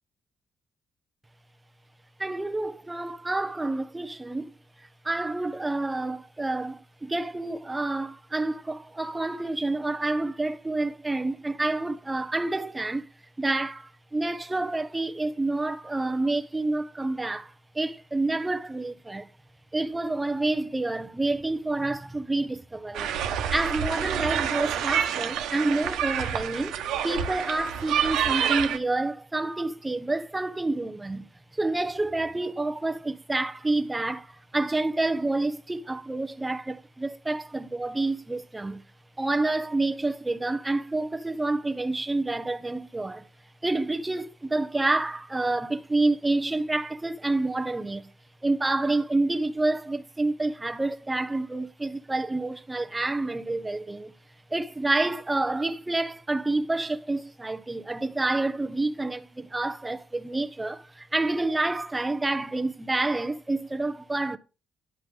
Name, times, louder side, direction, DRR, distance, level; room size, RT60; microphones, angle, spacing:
voice 1, 2.2-4.5 4.8-13.1 13.4-19.3 19.7-23.1 23.5-38.8 39.2-43.3 43.6-48.1 48.4-54.1 54.5-64.4, right 2 dB, 15° right, 1.1 m, -28 dB
sound 1, 22.9-28.8, right 9 dB, 90° right, 1.3 m, -28 dB
11.0 x 5.7 x 5.1 m
cardioid pair, 90°, 0 cm